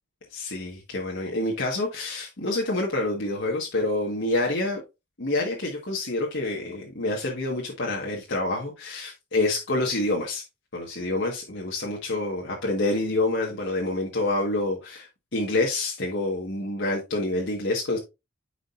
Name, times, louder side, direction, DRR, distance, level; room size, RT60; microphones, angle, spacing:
voice 1, 0.3-4.8 5.2-10.4 10.7-18.0, left 2 dB, 65° left, 1.5 m, -27 dB
9.8 x 5.0 x 2.5 m
head